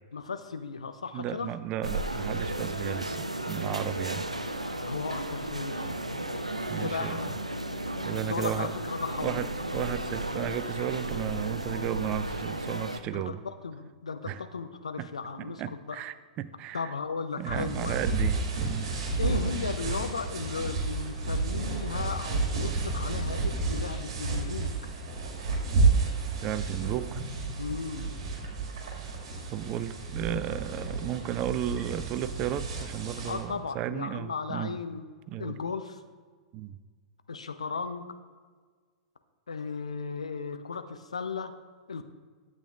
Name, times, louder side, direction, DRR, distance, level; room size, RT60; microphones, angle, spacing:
voice 1, 0.1-1.5 4.7-5.9 6.8-7.4 8.3-9.5 13.1-16.0 16.7-18.2 19.2-24.7 27.6-28.1 33.2-35.0 35.4-36.0 37.3-38.2 39.5-41.5 41.9-42.0, left 5 dB, 75° left, 9 dB, 0.6 m, -36 dB
voice 2, 1.1-4.3 6.7-7.2 8.0-8.7 9.2-13.4 14.3-14.4 15.0-15.1 15.4-16.9 17.4-18.9 26.4-27.2 29.5-34.7 35.3-35.5 36.5-36.8, right 11 dB, 30° right, 14 dB, 0.3 m, -34 dB
sound 1, 1.8-13.0, right 1 dB, 85° right, 0.5 m, -34 dB
sound 2, 17.4-33.4, right 3 dB, 50° right, 2.0 m, -31 dB
12.0 x 8.0 x 2.4 m, 1.5 s
figure-of-eight pair, 100°, 3 cm